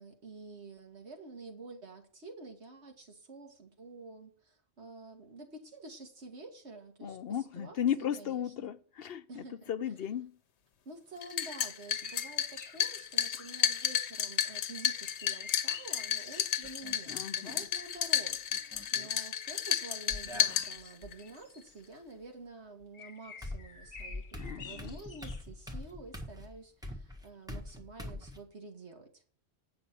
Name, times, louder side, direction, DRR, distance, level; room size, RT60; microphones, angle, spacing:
voice 1, 0.0-7.2 7.6-8.7 9.3-9.7 10.9-24.3 24.6-29.2, right 3 dB, 90° right, 2.2 m, -49 dB
voice 2, 7.0-10.4 17.1-17.7 24.4-25.0, left 9 dB, 65° left, 0.9 m, -36 dB
sound 1, 11.2-21.2, left 9 dB, 90° left, 1.0 m, -32 dB
sound 2, 11.8-14.3 14.8-17.8 19.2-21.8 22.9-25.5 25.9-26.0, left 5 dB, 50° left, 1.2 m, -51 dB
sound 3, 16.6-17.2 18.5-19.1 20.1-21.1 22.8-22.9 23.4-28.4, left 1 dB, 5° right, 1.6 m, -44 dB
9.0 x 6.0 x 5.8 m
omnidirectional pair, 1.1 m